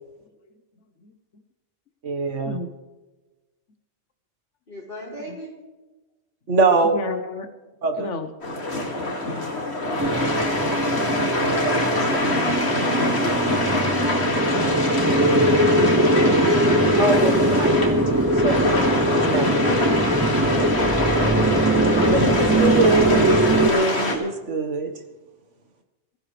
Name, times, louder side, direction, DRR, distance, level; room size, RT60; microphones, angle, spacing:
voice 1, 2.0-2.6 6.5-7.0 7.8-8.1 17.0-18.7 19.1-19.5 22.1-24.9, right 3 dB, 85° right, 6 dB, 1.8 m, -23 dB
voice 2, 4.7-5.5 9.9-10.3 11.4-13.8, right 1 dB, 50° left, -5 dB, 5.0 m, -39 dB
voice 3, 6.8-7.5 7.9-8.3 19.4-20.0, left 4 dB, 85° left, 7 dB, 1.3 m, -31 dB
sound 1, 8.4-24.2, left 2 dB, 65° left, 2.5 m, -24 dB
sound 2, 10.0-23.7, right 1 dB, 15° right, 0.6 m, -21 dB
22.5 x 14.5 x 3.3 m, 1.1 s
omnidirectional pair, 1.2 m